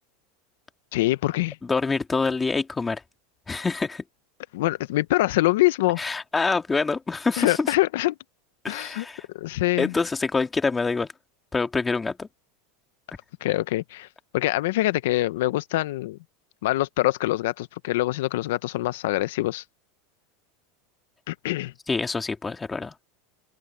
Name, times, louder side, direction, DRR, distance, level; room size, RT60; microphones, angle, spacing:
voice 1, 0.9-1.6 4.5-6.0 7.4-8.1 8.7-9.1 9.3-9.9 13.4-14.1 14.3-16.2 16.6-19.6 21.3-21.7, left 17 dB, 75° left, 0.7 m, -24 dB
voice 2, 1.6-3.0 3.5-4.0 6.0-7.7 8.6-9.3 9.8-11.1 11.5-12.3 21.9-22.9, left 4 dB, 15° left, 2.0 m, -26 dB
open air
supercardioid pair, 125°, 0 cm